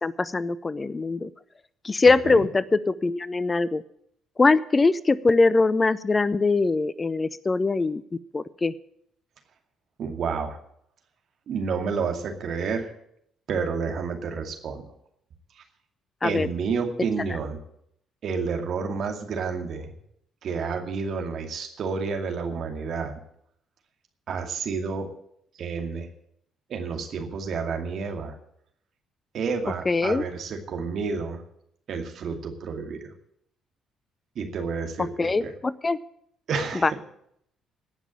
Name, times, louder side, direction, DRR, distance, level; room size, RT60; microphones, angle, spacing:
voice 1, 0.0-1.3 1.8-3.8 4.4-8.0 8.3-8.7 16.2-16.5 29.9-30.3 35.2-36.0 36.8-36.9, left 3 dB, 30° left, 18 dB, 0.6 m, -22 dB
voice 2, 10.0-10.6 11.5-12.9 13.5-14.8 15.5-15.6 16.2-17.6 18.2-20.0 20.4-23.2 24.3-25.1 25.5-26.1 26.7-28.4 29.3-31.4 31.9-33.1 34.4-35.5 36.5-37.0, right 5 dB, 55° right, 4 dB, 2.3 m, -30 dB
18.0 x 6.1 x 9.0 m, 0.73 s
hypercardioid pair, 50°, 0 cm